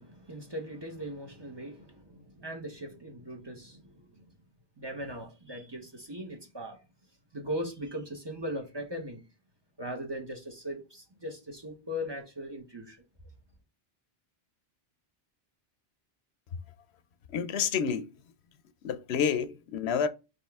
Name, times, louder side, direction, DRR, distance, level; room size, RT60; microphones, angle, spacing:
voice 1, 0.0-4.1 4.8-6.8 7.3-9.2 9.8-13.0, equal, 25° right, 1.0 m, -39 dB
voice 2, 17.3-18.1 18.8-20.1, left 7 dB, 80° left, 0.8 m, -29 dB
4.3 x 3.3 x 3.5 m
omnidirectional pair, 1.1 m